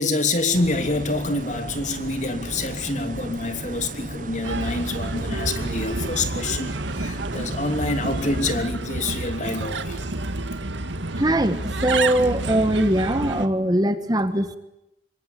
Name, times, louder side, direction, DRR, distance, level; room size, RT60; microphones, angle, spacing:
voice 1, 0.0-10.0, left 2 dB, 40° left, 3.0 m, -26 dB
sound 1, 0.5-8.6, right 2 dB, 45° right, 1.1 m, -35 dB
Bird, 4.4-13.5, right 2 dB, 85° right, 1.9 m, -29 dB
voice 2, 11.1-14.6, right 1 dB, 20° right, 1.5 m, -21 dB
27.0 x 24.0 x 9.3 m
head